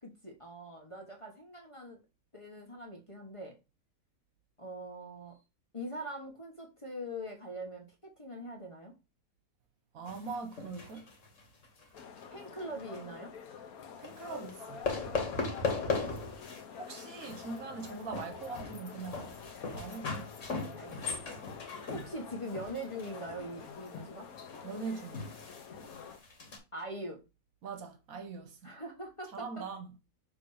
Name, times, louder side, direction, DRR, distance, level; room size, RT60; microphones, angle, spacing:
voice 1, 0.0-2.0 2.3-3.6 4.6-5.3 5.7-8.9 12.3-13.3 20.7-21.2 21.9-24.3 26.7-27.2 28.6-29.6, equal, 25° left, 1.2 m, -42 dB
voice 2, 9.9-11.1 14.0-14.9 16.8-19.3 19.7-20.3 24.6-25.3 27.6-28.7 29.3-29.9, right 4 dB, 70° right, 1.5 m, -42 dB
sound 1, 10.1-12.3 12.6-13.0 14.0-14.5 14.8-16.6 16.9-26.6, left 4 dB, 55° left, 1.7 m, -39 dB
sound 2, 11.9-26.2, left 7 dB, 75° left, 1.3 m, -48 dB
6.9 x 3.2 x 4.9 m
omnidirectional pair, 1.6 m